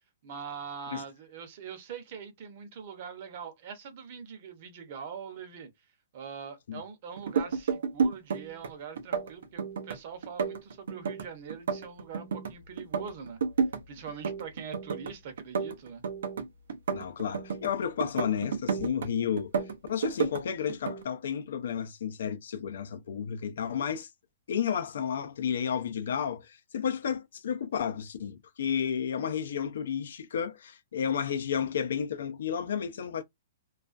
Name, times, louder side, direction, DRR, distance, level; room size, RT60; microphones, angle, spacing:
voice 1, 0.2-5.7 6.1-13.4 13.9-16.0, right 6 dB, 45° right, 0.7 m, -43 dB
sound 1, 7.2-8.7 9.0-10.0 10.2-12.5 12.8-13.8 14.1-15.1 15.4-17.7 18.0-19.1 19.4-20.4 20.7-21.0, right 6 dB, 80° right, 0.5 m, -31 dB
voice 2, 16.9-19.5 19.9-24.1 24.5-33.2, left 8 dB, 70° left, 0.4 m, -32 dB
2.3 x 2.2 x 2.4 m
hypercardioid pair, 160°, 0 cm